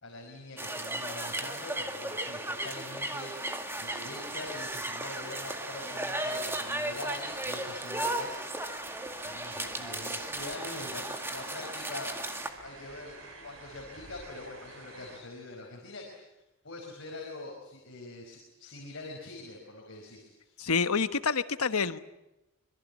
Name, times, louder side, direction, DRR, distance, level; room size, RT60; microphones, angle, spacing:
voice 1, 0.0-3.3 3.8-8.4 9.2-12.1 12.6-13.2 13.4-16.4 16.6-20.7, left 2 dB, 55° left, 0 dB, 5.2 m, -44 dB
sound 1, 0.6-12.5, right 1 dB, 10° right, 2.0 m, -35 dB
sound 2, 4.2-15.2, right 2 dB, 65° right, 7.3 m, -50 dB
voice 2, 20.6-22.0, left 5 dB, 85° left, 12 dB, 1.2 m, -27 dB
26.5 x 23.0 x 8.4 m, 0.94 s
head